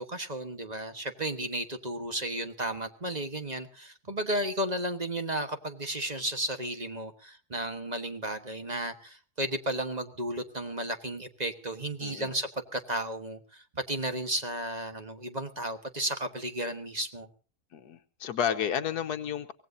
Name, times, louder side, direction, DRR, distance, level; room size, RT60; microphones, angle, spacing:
voice 1, 0.0-17.3, right 1 dB, 30° right, 7 dB, 1.3 m, -33 dB
voice 2, 12.0-12.3 17.7-19.5, left 8 dB, 85° left, 7 dB, 1.5 m, -31 dB
24.0 x 18.0 x 2.7 m, 0.39 s
omnidirectional pair, 1.6 m